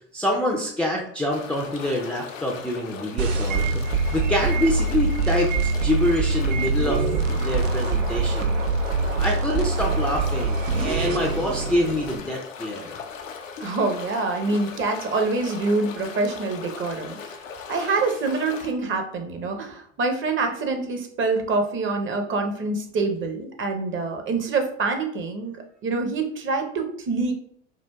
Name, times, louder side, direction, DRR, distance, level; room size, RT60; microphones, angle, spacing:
voice 1, 0.1-5.5 5.8-7.1 7.4-8.6 9.2-13.0, left 1 dB, 5° left, -2 dB, 0.4 m, -26 dB
sound 1, 1.3-18.7, left 6 dB, 90° left, 0.5 m, -39 dB
sound 2, 3.2-12.2, right 3 dB, 75° right, 0.6 m, -24 dB
voice 2, 13.6-17.2 17.7-25.6 25.8-27.3, right 3 dB, 30° right, 5 dB, 0.8 m, -25 dB
5.0 x 2.4 x 2.2 m, 0.64 s
hypercardioid pair, 75°, 38 cm